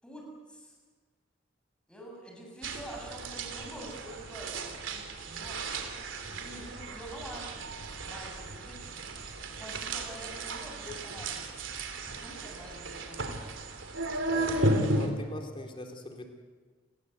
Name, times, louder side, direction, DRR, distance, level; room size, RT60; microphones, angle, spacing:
voice 1, 0.0-0.7 1.9-5.8 6.3-7.6 8.0-8.8 9.5-11.6 11.9-13.3, right 1 dB, 5° left, -1 dB, 7.5 m, -46 dB
sound 1, 2.6-15.1, right 2 dB, 75° right, 3.1 m, -34 dB
voice 2, 14.3-16.3, left 1 dB, 25° left, 3 dB, 3.3 m, -41 dB
29.5 x 21.0 x 8.2 m, 1.4 s
head